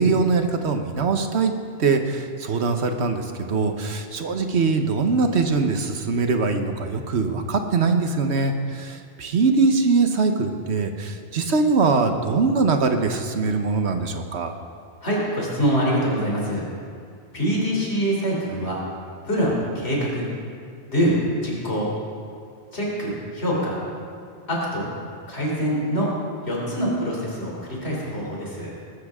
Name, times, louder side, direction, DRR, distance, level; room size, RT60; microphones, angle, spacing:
voice 1, 0.0-1.5 1.8-14.5, right 4 dB, 80° right, 6 dB, 1.3 m, -22 dB
voice 2, 15.0-16.7 17.3-18.8 19.2-20.3 20.9-21.9 22.7-23.8 24.5-24.9 25.3-26.1 26.4-28.7, equal, 75° left, -4 dB, 3.7 m, -24 dB
20.0 x 13.0 x 3.6 m, 2.3 s
omnidirectional pair, 1.1 m